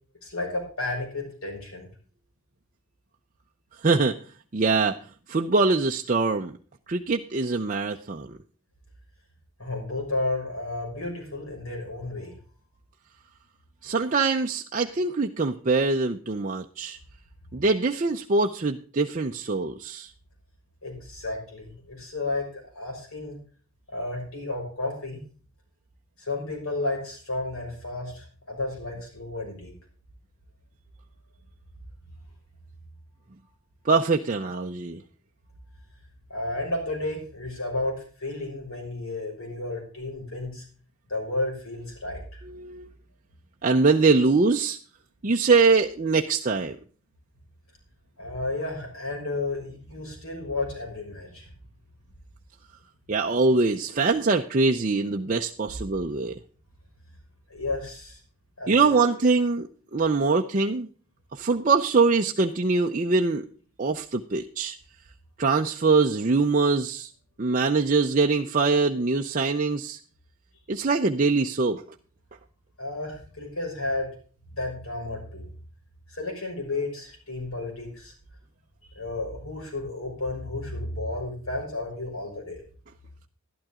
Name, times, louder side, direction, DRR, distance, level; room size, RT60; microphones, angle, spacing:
voice 1, 0.2-1.9 9.6-12.4 20.8-23.4 23.9-25.2 26.2-29.7 36.3-40.6 41.1-42.4 48.2-51.5 57.5-58.2 58.6-59.0 72.8-74.1 74.5-75.5 76.1-78.1 78.9-82.6, left 2 dB, 75° left, 1 dB, 6.0 m, -32 dB
voice 2, 3.8-4.2 4.5-5.0 5.3-6.6 6.9-8.3 13.8-17.0 17.5-20.1 33.8-35.0 42.5-42.9 43.6-44.8 45.2-46.8 53.1-56.4 58.7-60.9 61.3-63.4 63.8-64.8 65.4-67.1 67.4-70.0 70.7-71.8, right 4 dB, 35° right, 2 dB, 0.6 m, -23 dB
12.0 x 12.0 x 3.7 m, 0.40 s
head